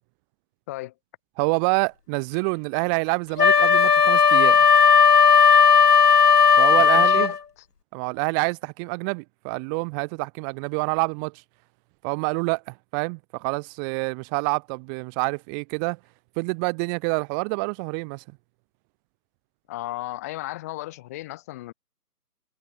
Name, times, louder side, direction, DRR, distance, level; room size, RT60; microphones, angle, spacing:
voice 1, 1.4-4.6 6.6-7.3 7.9-11.4 12.0-16.0 16.4-18.2, right 39 dB, 10° right, 2.2 m, -27 dB
Wind instrument woodwind instrument, 3.4-7.4, left 6 dB, 75° left, 1.3 m, -15 dB
voice 2, 6.7-7.4 19.7-21.7, left 17 dB, 10° left, 1.3 m, -35 dB
hypercardioid pair, 160°, 48 cm